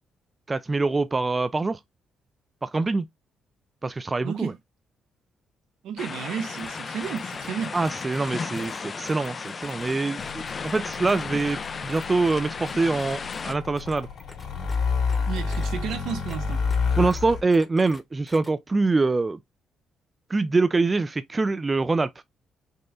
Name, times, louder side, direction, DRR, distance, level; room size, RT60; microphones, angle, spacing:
voice 1, 0.5-1.8 2.6-3.1 3.8-4.5 7.7-14.1 17.0-19.4 20.3-22.1, right 3 dB, 25° right, 0.4 m, -24 dB
voice 2, 4.2-4.5 5.8-7.7 15.3-16.6, right 8 dB, 80° right, 1.0 m, -32 dB
sound 1, 6.0-13.5, left 5 dB, 40° left, 0.4 m, -35 dB
sound 2, 6.6-9.9 10.2-12.3 12.7-14.8 15.1-16.4 16.7-16.8 17.1-17.2 17.5-18.0 18.3-18.5, left 2 dB, 15° left, 1.0 m, -46 dB
sound 3, 10.2-17.4, left 5 dB, 65° left, 2.1 m, -29 dB
5.4 x 2.1 x 3.6 m
cardioid pair, 90°, 0 cm